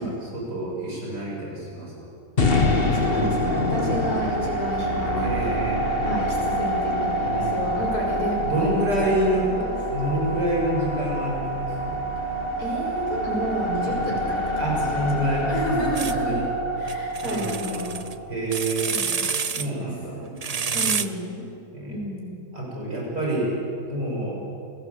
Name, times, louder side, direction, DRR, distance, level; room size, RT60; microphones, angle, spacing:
voice 1, 0.0-1.9 3.7-4.2 5.2-6.2 7.2-7.9 8.4-9.5 9.9-12.0 13.8-14.0 14.6-16.5 17.2-18.9 19.6-20.2 20.5-21.0 21.7-22.0 22.5-23.5 23.9-24.3, right 1 dB, 90° right, -3 dB, 8.2 m, -28 dB
sound 1, 2.4-18.5, equal, 35° left, 1.9 m, -26 dB
voice 2, 2.9-5.6 6.0-9.7 12.6-14.8 15.1-15.2 15.5-16.4 16.7-18.0 18.9-20.4 20.7-21.4 21.9-22.4, equal, 65° left, -2 dB, 6.9 m, -31 dB
sound 2, 16.0-16.1 16.9-18.1 18.5-19.7 20.4-21.1, right 5 dB, 45° right, 0.5 m, -28 dB
28.5 x 19.5 x 8.4 m, 2.6 s
omnidirectional pair, 1.7 m